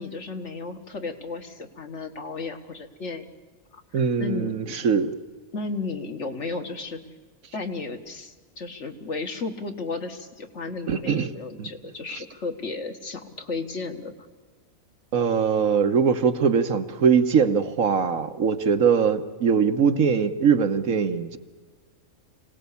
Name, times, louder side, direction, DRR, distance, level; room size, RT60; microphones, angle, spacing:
voice 1, 0.0-3.3 3.7-4.8 5.5-7.0 7.5-14.1, left 4 dB, 55° left, 4 dB, 1.9 m, -34 dB
voice 2, 3.9-5.1 10.9-11.3 11.6-11.7 15.1-21.4, right 6 dB, 70° right, 8 dB, 1.5 m, -21 dB
25.5 x 18.0 x 8.4 m, 1.4 s
omnidirectional pair, 1.5 m